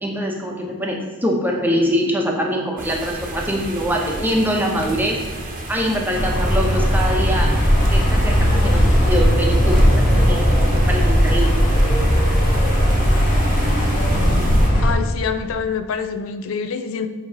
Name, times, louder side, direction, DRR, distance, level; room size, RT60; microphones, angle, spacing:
voice 1, 0.0-5.2 5.7-7.5 7.9-9.8 10.1-10.4 10.7-11.5, equal, 10° right, 0 dB, 0.8 m, -23 dB
sound 1, 2.8-14.7, right 1 dB, 40° right, 0.9 m, -31 dB
sound 2, 6.1-14.9, equal, 40° left, 1.4 m, -17 dB
voice 2, 14.8-17.1, left 6 dB, 75° left, 8 dB, 0.4 m, -26 dB
8.0 x 3.0 x 5.0 m, 1.5 s
head